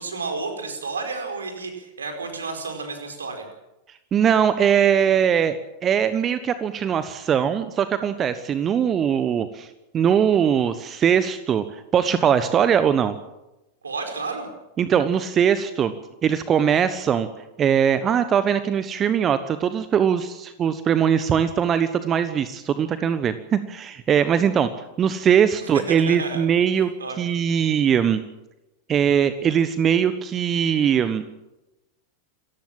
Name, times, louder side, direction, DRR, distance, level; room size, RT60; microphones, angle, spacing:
voice 1, 0.0-3.5 13.8-14.5 25.6-26.4 26.7-27.3, right 4 dB, 70° right, 5 dB, 4.8 m, -31 dB
voice 2, 4.1-9.7 9.9-13.2 14.8-15.9 16.2-17.3 17.6-24.7 25.0-26.9 27.2-28.2 28.9-31.3, right 8 dB, 25° right, 12 dB, 1.2 m, -21 dB
27.5 x 15.0 x 7.6 m, 0.95 s
figure-of-eight pair, 90°, 0 cm